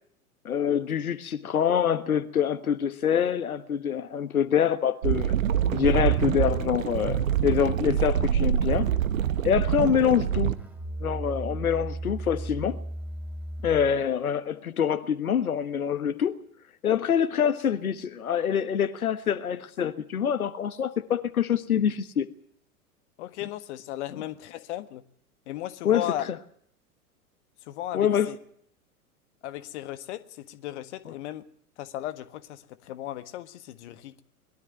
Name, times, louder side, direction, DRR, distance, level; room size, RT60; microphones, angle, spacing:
voice 1, 0.4-5.3 5.7-8.9 9.4-10.5 11.0-12.8 13.6-16.4 16.8-22.3 25.8-26.4 27.9-28.3 31.0-31.1, left 8 dB, 70° left, 1.5 m, -25 dB
sound 1, 5.0-10.6, right 9 dB, 60° right, 1.4 m, -25 dB
Musical instrument, 10.5-14.1, right 2 dB, 5° right, 3.2 m, -35 dB
voice 2, 23.2-25.0 25.5-26.2 27.7-28.4 29.4-31.4 31.8-34.2, left 13 dB, 50° left, 1.6 m, -36 dB
22.0 x 13.5 x 9.5 m
figure-of-eight pair, 95°, 45 cm